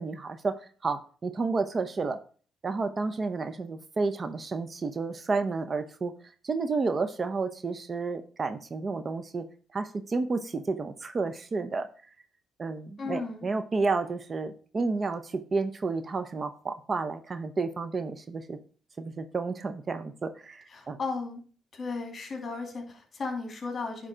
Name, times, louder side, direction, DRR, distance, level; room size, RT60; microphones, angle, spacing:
voice 1, 0.0-2.2 2.6-6.1 6.4-9.4 9.7-11.9 12.6-18.6 19.0-21.0, right 4 dB, 35° right, 10 dB, 0.7 m, -31 dB
voice 2, 13.0-13.5 20.7-21.4 21.7-24.1, left 4 dB, 40° left, 3 dB, 2.7 m, -35 dB
9.9 x 3.8 x 4.9 m, 0.41 s
cardioid pair, 90°, 0 cm